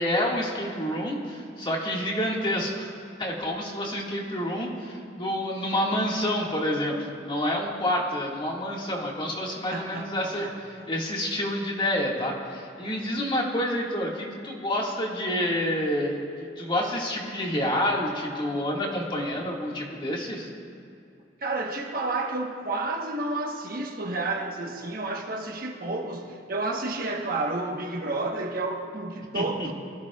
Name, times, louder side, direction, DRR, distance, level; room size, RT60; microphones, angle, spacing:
voice 1, 0.0-2.9 3.2-7.0 7.2-20.5 29.3-29.7, left 1 dB, 30° left, -2 dB, 1.9 m, -28 dB
voice 2, 9.7-10.5 21.4-29.7, right 2 dB, 55° right, 2 dB, 1.2 m, -31 dB
23.0 x 14.0 x 2.4 m, 2.5 s
head